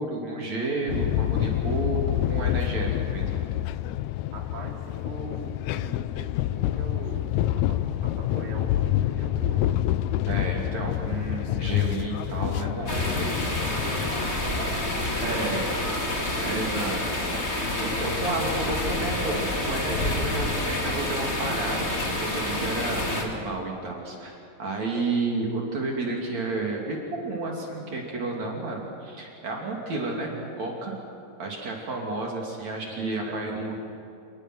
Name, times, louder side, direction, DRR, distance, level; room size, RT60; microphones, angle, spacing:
voice 1, 0.0-3.3 10.2-13.2 15.2-15.7 16.4-17.0 17.3-21.9 22.2-31.0 31.4-33.7, right 3 dB, 55° right, -1 dB, 4.0 m, -31 dB
sound 1, 0.9-14.2, left 13 dB, 85° left, 1.6 m, -27 dB
voice 2, 4.3-9.9 12.9-16.4 32.9-33.9, right 3 dB, 80° right, 0 dB, 4.7 m, -42 dB
sound 2, 12.9-23.2, left 1 dB, 20° left, 2.5 m, -28 dB
28.0 x 21.0 x 6.3 m, 2.7 s
omnidirectional pair, 3.9 m